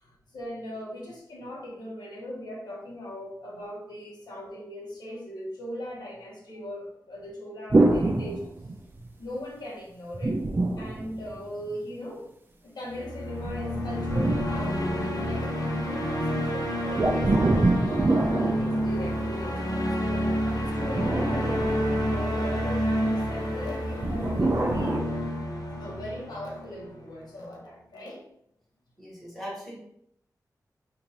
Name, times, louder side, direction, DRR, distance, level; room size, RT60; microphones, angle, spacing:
voice 1, 0.0-8.4 9.2-10.4 10.8-12.3 12.6-17.3 17.6-21.7 22.0-25.0 25.8-28.2, equal, 90° left, -3 dB, 1.3 m, -39 dB
sound 1, 7.7-9.1 10.1-11.7 13.4-15.4 16.9-19.5 20.6-22.5 24.0-25.0, right 2 dB, 30° right, 0.5 m, -26 dB
sound 2, 12.9-27.1, equal, 65° left, 0.9 m, -29 dB
voice 2, 29.0-29.8, equal, ahead, -6 dB, 1.7 m, -39 dB
5.2 x 2.7 x 2.9 m, 0.72 s
wide cardioid pair, 135°, 7 cm